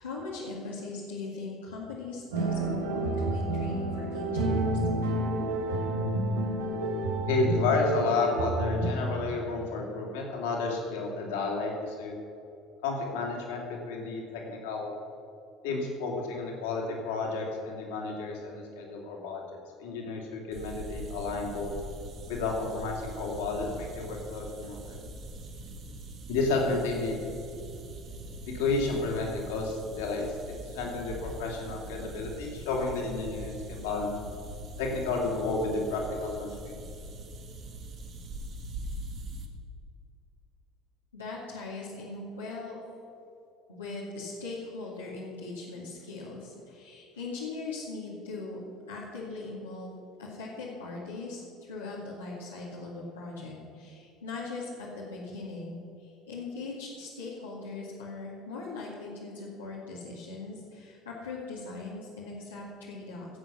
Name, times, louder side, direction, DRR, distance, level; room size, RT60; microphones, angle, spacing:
voice 1, 0.0-4.8 41.1-42.8 43.7-48.6 48.9-49.9 50.2-63.3, left 3 dB, 90° left, -7 dB, 2.2 m, -40 dB
sound 1, 2.3-8.9, right 1 dB, 80° right, 1.7 m, -29 dB
voice 2, 7.3-12.1 12.8-14.9 15.6-19.4 19.8-21.8 22.3-25.0 26.3-27.2 28.5-30.3 30.7-34.1 34.8-36.8, left 3 dB, 70° left, -1 dB, 2.8 m, -31 dB
sound 2, 20.5-39.5, right 1 dB, 50° right, 2.1 m, -42 dB
17.0 x 7.7 x 6.2 m, 2.8 s
hypercardioid pair, 65°, 0 cm